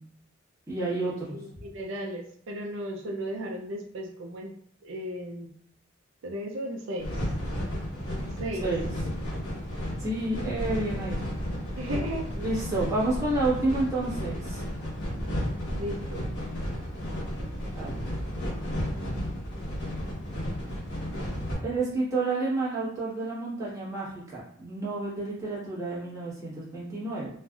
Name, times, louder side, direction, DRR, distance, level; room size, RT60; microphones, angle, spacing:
voice 1, 0.7-1.4 8.6-8.9 10.0-11.2 11.7-11.8 12.3-14.6 17.7-18.0 21.6-27.3, right 2 dB, 15° right, -8 dB, 1.2 m, -30 dB
voice 2, 1.3-4.5 4.8-5.5 6.2-7.3 8.4-8.7 11.8-12.3 15.7-16.3 17.8-17.9, equal, 75° right, 0 dB, 0.4 m, -35 dB
sound 1, 7.0-21.6, equal, 60° left, 1.0 m, -33 dB
3.2 x 2.5 x 2.3 m, 0.64 s
head